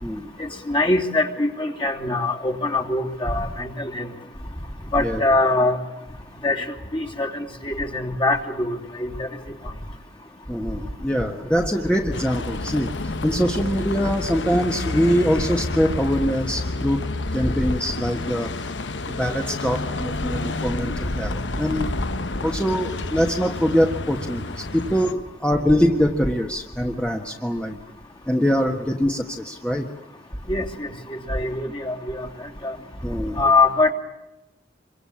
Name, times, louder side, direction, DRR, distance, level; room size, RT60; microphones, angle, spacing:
voice 1, 0.4-4.1 4.9-5.8 6.4-6.6 6.9-9.3 30.5-32.3 32.6-32.8 33.4-33.9, left 2 dB, 30° left, 1 dB, 3.1 m, -23 dB
voice 2, 10.5-17.1 17.3-18.5 19.1-21.9 22.4-27.8 28.3-29.9 33.0-33.4, equal, 5° left, 2 dB, 1.5 m, -23 dB
Bus, 12.1-25.1, left 2 dB, 70° left, 1.2 m, -30 dB
27.5 x 24.0 x 8.7 m, 0.97 s
head